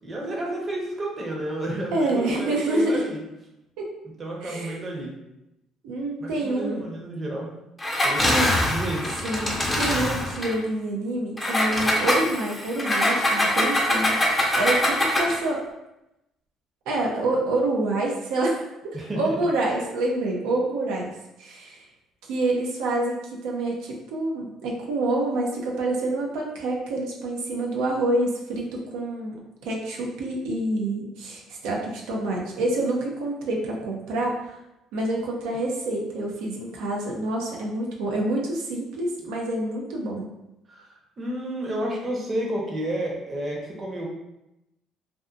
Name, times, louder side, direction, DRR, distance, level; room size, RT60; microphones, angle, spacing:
voice 1, 0.0-3.2 4.2-5.1 6.2-7.5 8.0-9.1 18.9-19.4 40.7-44.1, right 1 dB, 35° right, -1 dB, 0.8 m, -31 dB
voice 2, 1.9-3.0 3.8-3.9 4.4-4.8 5.8-6.9 8.2-8.5 9.2-14.2 14.5-15.6 16.9-18.6 19.2-21.8 22.3-29.4 29.6-34.6 34.9-40.3, right 2 dB, 80° right, -1 dB, 0.6 m, -27 dB
Engine, 7.8-10.6 11.4-15.4, left 1 dB, 20° left, 0.6 m, -23 dB
2.5 x 2.4 x 2.4 m, 0.90 s
supercardioid pair, 70°, 0 cm